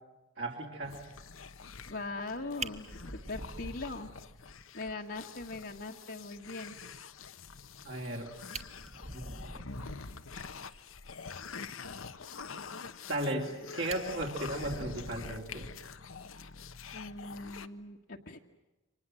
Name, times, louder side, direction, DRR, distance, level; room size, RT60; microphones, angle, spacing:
voice 1, 0.4-1.0 7.8-8.3 9.1-9.2 13.1-15.7, right 1 dB, 60° right, -1 dB, 3.3 m, -35 dB
sound 1, 0.8-17.7, left 5 dB, 85° left, 1.2 m, -46 dB
voice 2, 1.9-4.1 4.7-6.8 16.9-18.4, left 3 dB, 55° left, -1 dB, 1.6 m, -41 dB
Fire, 2.2-2.3 2.6-4.5 4.9-5.0 5.4-5.5 5.8-5.9 8.0-8.1 8.4-10.2 13.0-13.5 13.9-16.1 17.4-17.6, right 3 dB, 30° right, 1.3 m, -44 dB
29.5 x 25.5 x 7.7 m, 1.1 s
head